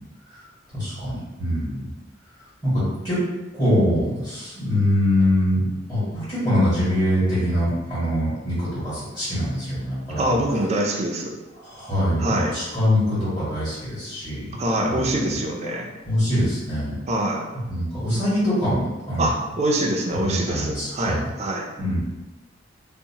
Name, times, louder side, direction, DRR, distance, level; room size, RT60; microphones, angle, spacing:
voice 1, 0.7-1.8 2.6-2.7 3.0-3.2 3.5-10.4 11.6-14.5 14.8-15.3 16.0-17.0 17.7-19.3 20.2-21.2 21.8-22.0, left 1 dB, 25° left, -11 dB, 1.4 m, -23 dB
voice 2, 10.2-11.3 12.2-12.5 14.6-15.9 17.1-17.5 19.2-21.7, right 1 dB, 35° right, 1 dB, 0.4 m, -24 dB
2.7 x 2.0 x 2.8 m, 1.1 s
head